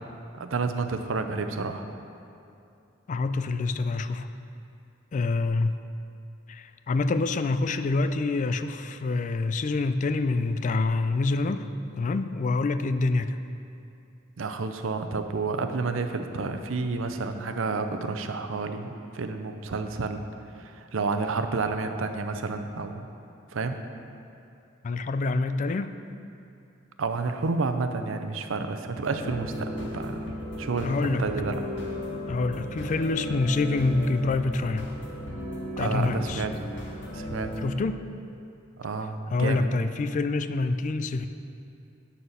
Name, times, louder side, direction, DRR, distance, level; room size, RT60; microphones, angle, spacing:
voice 1, 0.3-1.9 14.4-18.9 19.1-20.2 20.6-23.0 23.5-23.8 27.0-30.2 30.6-31.6 35.8-36.5 37.1-37.5 38.8-39.7, right 4 dB, 90° right, 7 dB, 0.6 m, -30 dB
voice 2, 3.1-4.3 5.1-5.8 6.5-11.7 12.0-13.4 24.8-25.9 30.8-31.3 32.3-34.9 35.8-36.5 37.6-38.0 39.3-41.3, left 3 dB, 40° left, 11 dB, 0.3 m, -26 dB
sound 1, 29.0-37.6, equal, 65° left, 1.9 m, -35 dB
11.0 x 4.3 x 6.7 m, 2.6 s
head